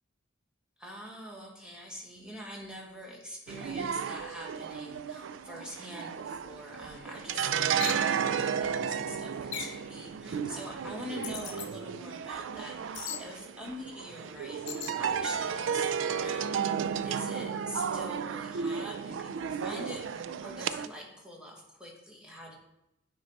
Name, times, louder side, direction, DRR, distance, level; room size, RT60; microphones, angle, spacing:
voice 1, 0.8-14.6 15.0-22.5, equal, 5° right, -2 dB, 1.5 m, -44 dB
sound 1, 3.5-20.9, right 7 dB, 70° right, 0.3 m, -33 dB
sound 2, 7.8-8.1 9.5-9.8 11.2-11.7 12.9-13.2 14.7-15.0, left 9 dB, 65° left, 0.9 m, -37 dB
9.3 x 4.5 x 4.1 m, 0.85 s
head